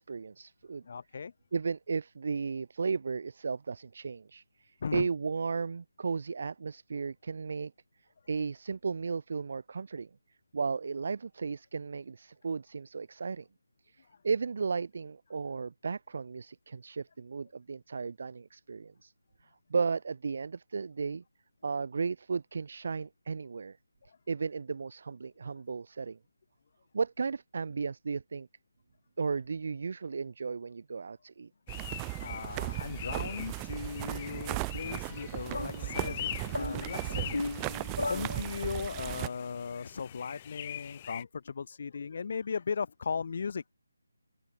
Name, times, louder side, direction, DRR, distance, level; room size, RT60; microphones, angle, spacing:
voice 1, 0.0-0.8 1.5-7.7 8.3-10.1 10.5-13.5 13.9-19.1 19.7-21.2 21.6-23.8 24.3-26.2 26.9-28.5 29.2-31.5, right 5 dB, 45° right, 0.9 m, -34 dB
voice 2, 0.8-1.3 4.8-5.1 14.0-14.2 24.1-24.2 32.2-37.8 38.1-43.6, left 5 dB, 45° left, 3.2 m, -37 dB
sound 1, 31.7-41.2, left 12 dB, 25° left, 2.2 m, -44 dB
sound 2, 31.7-39.3, right 40 dB or more, 15° right, 0.3 m, -37 dB
sound 3, 35.5-39.0, left 3 dB, 60° left, 3.6 m, -37 dB
open air
figure-of-eight pair, 155°, 0 cm